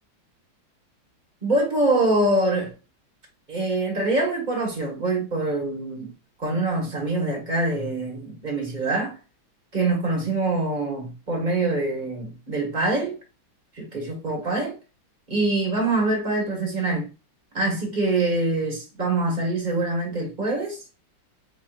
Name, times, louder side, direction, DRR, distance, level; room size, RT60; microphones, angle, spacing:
voice 1, 1.4-2.7 3.5-6.1 6.4-9.1 9.7-13.2 13.7-14.8 15.3-17.1 17.5-20.8, right 2 dB, 25° right, 1.1 m, -24 dB
4.8 x 2.9 x 2.4 m
omnidirectional pair, 2.3 m